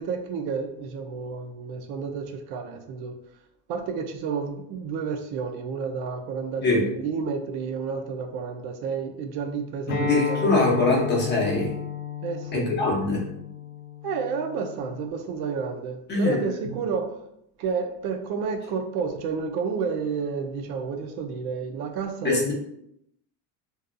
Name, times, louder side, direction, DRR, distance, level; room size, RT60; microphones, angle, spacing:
voice 1, 0.0-3.2 3.7-10.5 12.2-12.7 14.0-17.2 17.6-22.5, right 5 dB, 70° right, 4 dB, 0.5 m, -30 dB
Acoustic guitar, 9.9-15.1, left 6 dB, 85° left, 0.8 m, -33 dB
voice 2, 9.9-11.7 12.5-13.2 16.1-16.8 22.2-22.5, left 3 dB, 25° left, -3 dB, 0.6 m, -23 dB
2.7 x 2.3 x 2.4 m, 0.75 s
cardioid pair, 160°, 41 cm